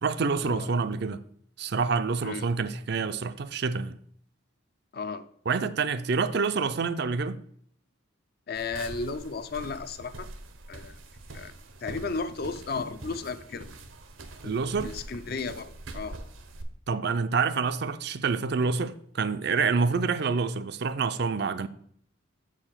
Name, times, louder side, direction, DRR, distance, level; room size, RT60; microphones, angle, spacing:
voice 1, 0.0-1.2 1.6-4.0 5.5-7.4 14.4-14.9 16.9-21.7, right 4 dB, 55° right, 0.5 m, -27 dB
voice 2, 4.9-5.2 8.5-10.3 10.7-11.0 11.3-11.5 11.8-13.7 14.4-14.6 14.8-16.2, left 4 dB, 50° left, 0.5 m, -34 dB
sound 1, 8.5-16.6, right 2 dB, 80° right, 0.9 m, -44 dB
7.2 x 5.0 x 5.6 m
head